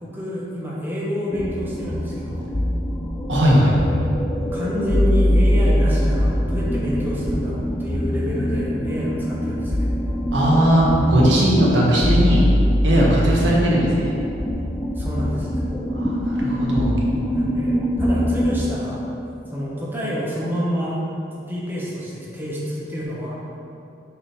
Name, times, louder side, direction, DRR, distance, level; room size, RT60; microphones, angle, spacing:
voice 1, 0.0-2.4 4.5-9.9 15.0-15.7 17.3-19.0 19.5-21.0 21.3-23.4, equal, 10° right, -6 dB, 0.9 m, -28 dB
sound 1, 1.3-18.7, equal, 15° left, 0.4 m, -22 dB
voice 2, 3.3-3.8 10.3-12.5 12.8-14.1 15.9-16.9, right 1 dB, 85° right, -4 dB, 1.2 m, -18 dB
5.9 x 3.7 x 4.2 m, 2.7 s
head